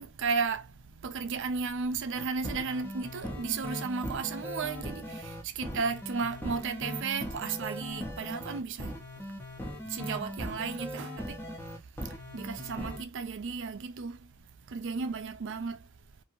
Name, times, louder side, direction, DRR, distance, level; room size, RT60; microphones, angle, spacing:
voice 1, 0.0-9.0 9.8-11.4 12.3-14.3 14.7-15.8, right 5 dB, 55° right, 0.4 m, -34 dB
sound 1, 2.2-13.0, equal, 10° left, 0.7 m, -39 dB
2.9 x 2.6 x 2.7 m
head